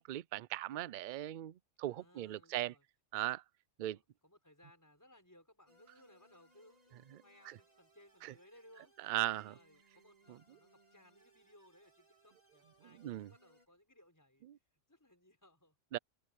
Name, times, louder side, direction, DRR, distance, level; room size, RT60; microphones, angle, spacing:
voice 1, 0.0-2.7 3.1-3.4 3.8-4.0 7.1-7.6 8.2-8.3 9.0-9.6 13.0-13.3 14.5-14.6 15.9-16.0, right 15 dB, 65° right, 0.4 m, -39 dB
voice 2, 1.9-2.8 3.9-9.1 9.5-14.5 14.9-15.8, left 1 dB, 15° left, 5.6 m, -64 dB
sound 1, 5.7-13.7, right 2 dB, 30° right, 3.7 m, -69 dB
omnidirectional pair, 1.3 m